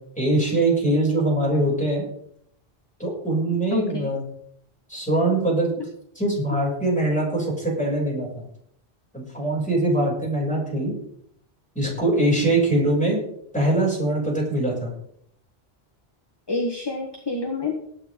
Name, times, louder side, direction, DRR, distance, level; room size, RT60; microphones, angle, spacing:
voice 1, 0.2-2.0 3.0-4.2 4.9-5.7 6.1-8.3 9.1-10.9 11.7-13.2 13.5-14.9, right 1 dB, 5° left, -4 dB, 6.6 m, -22 dB
voice 2, 3.7-4.1 16.5-17.8, left 2 dB, 25° left, 3 dB, 1.4 m, -27 dB
19.0 x 9.2 x 3.7 m, 0.70 s
omnidirectional pair, 1.1 m